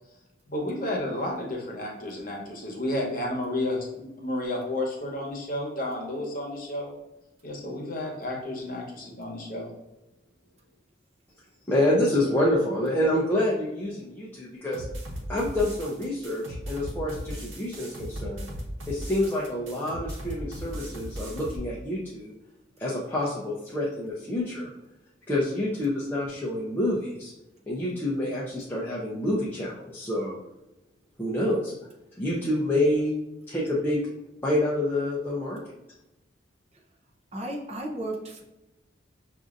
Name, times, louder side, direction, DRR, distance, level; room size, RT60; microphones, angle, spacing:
voice 1, 0.5-6.9 7.4-9.7, left 1 dB, 45° left, -1 dB, 1.0 m, -31 dB
voice 2, 11.7-14.8 15.3-18.5 18.9-22.3 22.8-24.7 25.3-27.3 27.7-30.4 31.2-31.7 32.2-33.2 33.5-34.0 34.4-35.6, left 1 dB, 10° left, -6 dB, 0.5 m, -27 dB
sound 1, 14.7-21.6, equal, 90° right, 1.0 m, -37 dB
voice 3, 37.3-38.4, right 1 dB, 35° right, 0 dB, 0.6 m, -34 dB
6.0 x 2.6 x 2.5 m, 0.98 s
head